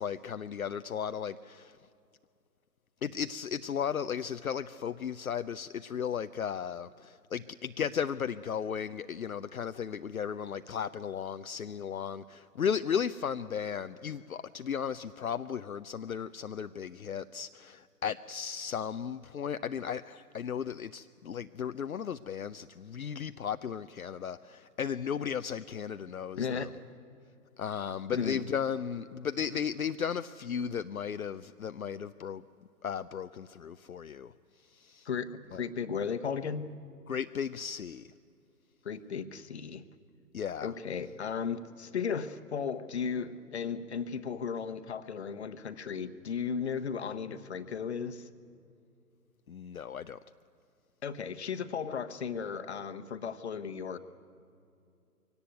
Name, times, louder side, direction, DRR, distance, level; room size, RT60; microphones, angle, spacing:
voice 1, 0.0-1.8 3.0-26.7 27.6-32.4 32.8-34.3 34.7-35.1 35.5-35.6 37.1-38.1 40.3-40.7 49.5-50.2, left 7 dB, 65° left, 11 dB, 0.6 m, -35 dB
voice 2, 26.4-26.7 28.1-28.4 35.0-36.7 38.8-39.8 40.6-48.3 51.0-54.0, left 6 dB, 45° left, 12 dB, 1.1 m, -35 dB
23.0 x 17.5 x 9.3 m, 2.5 s
figure-of-eight pair, 135°, 47 cm